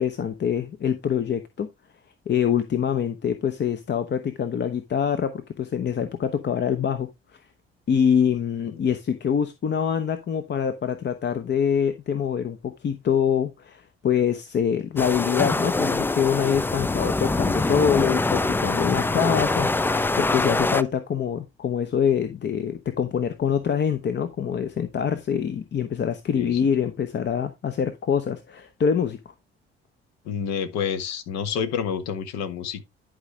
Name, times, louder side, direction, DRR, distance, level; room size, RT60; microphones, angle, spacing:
voice 1, 0.0-1.7 2.3-7.1 7.9-29.3, left 8 dB, 35° left, 0.9 m, -25 dB
sound 1, 15.0-20.8, left 2 dB, 5° left, 0.4 m, -24 dB
voice 2, 30.2-32.8, left 7 dB, 55° left, 1.3 m, -29 dB
11.0 x 5.1 x 3.3 m
figure-of-eight pair, 50°, 31 cm